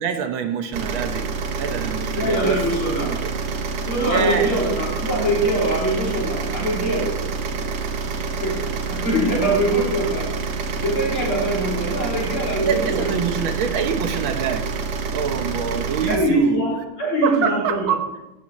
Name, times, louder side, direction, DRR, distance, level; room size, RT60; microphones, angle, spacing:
voice 1, 0.0-2.7 3.0-3.2 4.0-4.6 11.9-12.0 12.6-14.8 15.1-16.7 17.2-18.1, right 7 dB, 75° right, 7 dB, 1.7 m, -25 dB
sound 1, 0.7-16.2, right 4 dB, 60° right, 1.3 m, -27 dB
voice 2, 2.1-3.1 3.9-7.2 8.1-8.6 8.9-10.3 10.8-13.1 16.1-17.9, right 1 dB, 80° left, -4 dB, 4.5 m, -23 dB
16.5 x 7.7 x 4.3 m, 0.97 s
omnidirectional pair, 2.3 m